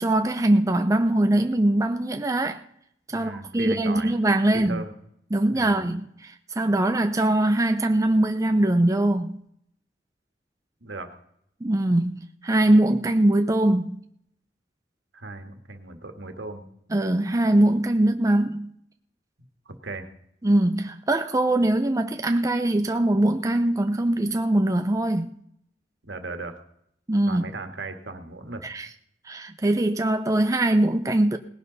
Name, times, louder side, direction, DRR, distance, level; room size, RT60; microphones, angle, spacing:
voice 1, 0.0-2.6 3.1-4.8 5.3-9.4 11.6-14.0 16.9-18.7 20.4-25.3 27.1-27.4 28.6-28.9 29.3-31.4, right 1 dB, 20° right, 0.5 m, -22 dB
voice 2, 3.1-4.1 4.5-4.9 5.5-5.8 10.8-11.1 15.1-16.7 19.7-20.1 26.0-26.5 27.3-28.7, right 3 dB, 75° right, 1.8 m, -36 dB
18.5 x 11.0 x 4.0 m
head